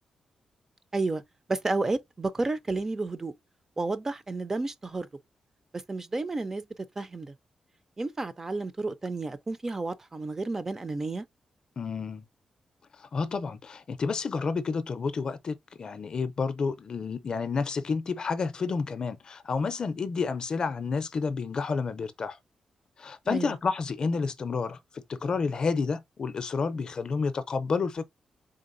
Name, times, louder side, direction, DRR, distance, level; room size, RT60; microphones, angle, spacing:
voice 1, 0.9-1.2 1.5-3.3 3.8-5.1 5.7-7.3 8.0-11.3 23.3-23.6, right 3 dB, 20° right, 0.3 m, -31 dB
voice 2, 11.8-12.2 13.0-22.4 23.0-28.0, left 4 dB, 40° left, 0.5 m, -30 dB
4.0 x 3.8 x 2.6 m
wide cardioid pair, 175°, 2 cm